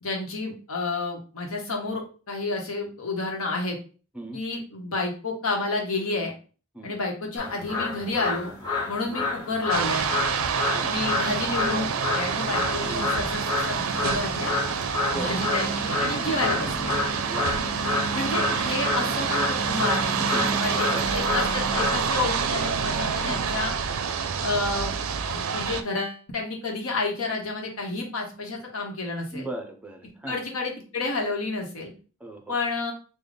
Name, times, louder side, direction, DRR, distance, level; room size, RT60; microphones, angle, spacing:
voice 1, 0.0-3.8 4.3-6.3 6.8-8.5 8.9-10.1 10.8-11.9 12.1-14.5 15.1-16.9 18.1-20.2 20.6-23.8 24.4-24.9 25.3-29.5 30.3-31.9 32.5-32.9, left 3 dB, 80° left, 1 dB, 1.0 m, -30 dB
sound 1, 7.4-22.0, left 2 dB, 20° left, 1.6 m, -29 dB
sound 2, 9.7-25.8, right 6 dB, 70° right, 0.4 m, -27 dB
voice 2, 12.8-13.1 15.1-15.7 17.2-17.5 19.0-19.3 20.2-21.1 23.2-23.5 29.3-30.4 32.2-32.6, right 2 dB, 5° right, 3 dB, 0.7 m, -37 dB
3.4 x 2.2 x 3.9 m, 0.36 s
head